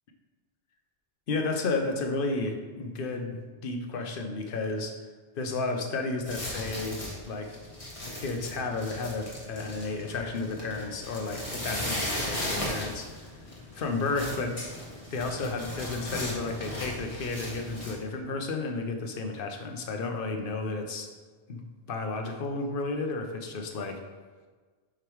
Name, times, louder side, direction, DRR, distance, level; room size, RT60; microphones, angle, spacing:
voice 1, 1.3-4.9 5.4-7.6 8.1-13.1 13.7-14.6 15.1-21.1 21.5-21.6 21.9-24.0, left 3 dB, 55° left, 4 dB, 0.9 m, -32 dB
sound 1, 6.3-17.9, left 1 dB, 30° left, 1.3 m, -37 dB
5.1 x 4.9 x 4.5 m, 1.4 s
omnidirectional pair, 1.2 m